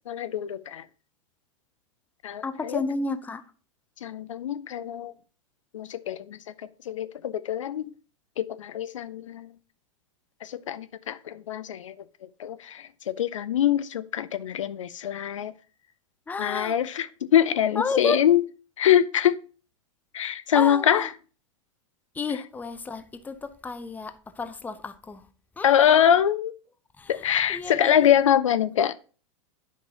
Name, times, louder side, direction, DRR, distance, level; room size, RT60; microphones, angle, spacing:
voice 1, 0.1-0.9 2.2-2.8 4.0-5.1 5.7-7.9 8.4-9.5 10.4-15.5 16.4-18.4 18.8-19.4 20.1-21.1 25.6-26.5 27.1-28.9, left 10 dB, 70° left, 0.5 m, -24 dB
voice 2, 2.4-3.4 16.3-16.8 17.8-18.2 20.5-21.1 22.1-25.2 25.6-26.0 27.0-27.2 27.5-28.1, left 4 dB, 10° left, 0.6 m, -31 dB
10.0 x 5.3 x 2.9 m
figure-of-eight pair, 90°, 17 cm